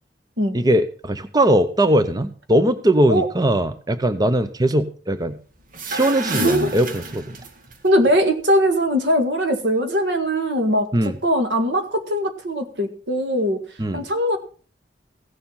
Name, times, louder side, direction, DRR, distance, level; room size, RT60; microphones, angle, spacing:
voice 1, 0.5-5.4 5.9-7.3 10.9-11.2 13.8-14.0, right 1 dB, 20° right, 11 dB, 0.7 m, -20 dB
sound 1, 5.6-7.8, right 1 dB, 50° right, 1.5 m, -28 dB
voice 2, 6.4-6.8 7.8-10.9 11.2-13.6 13.9-14.4, equal, 85° right, 7 dB, 1.9 m, -20 dB
16.0 x 7.1 x 5.6 m, 0.40 s
head